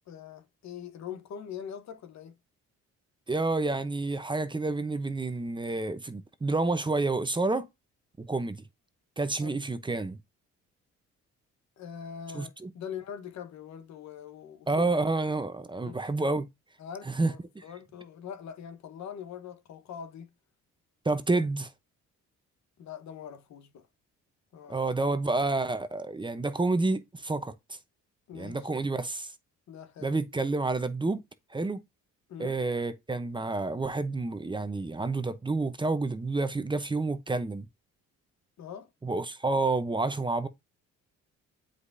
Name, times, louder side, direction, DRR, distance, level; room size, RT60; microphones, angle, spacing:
voice 1, 0.1-2.4 9.4-9.6 11.8-15.0 15.8-16.0 16.8-20.3 22.8-23.9 24.5-24.9 28.3-28.7 29.7-30.1 32.3-32.6 38.6-38.9, left 8 dB, 70° left, 1.3 m, -43 dB
voice 2, 3.3-7.7 8.2-8.7 9.2-10.2 12.3-12.7 14.7-16.5 17.2-17.6 21.0-21.7 24.7-27.5 28.3-29.3 30.0-31.2 31.5-31.8 32.4-37.7 39.0-40.5, right 3 dB, 15° right, 0.8 m, -29 dB
7.9 x 5.0 x 2.7 m
cardioid pair, 90°, 29 cm